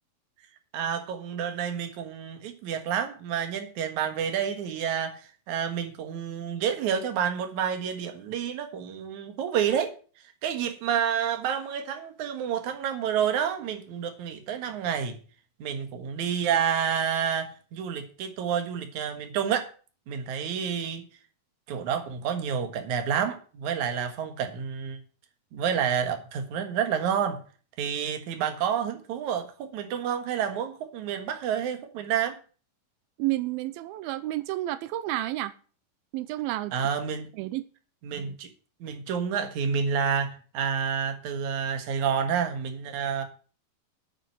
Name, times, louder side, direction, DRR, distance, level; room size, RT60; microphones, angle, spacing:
voice 1, 0.7-9.9 10.4-15.2 15.6-19.7 20.1-21.0 21.7-25.0 25.5-27.4 27.8-32.4 36.7-37.3 38.0-38.5 38.8-43.2, right 8 dB, 60° right, 7 dB, 2.7 m, -29 dB
voice 2, 33.2-35.5 36.1-36.7 37.4-37.7, right 16 dB, 90° right, 14 dB, 2.5 m, -30 dB
8.9 x 7.4 x 7.7 m, 0.39 s
omnidirectional pair, 4.2 m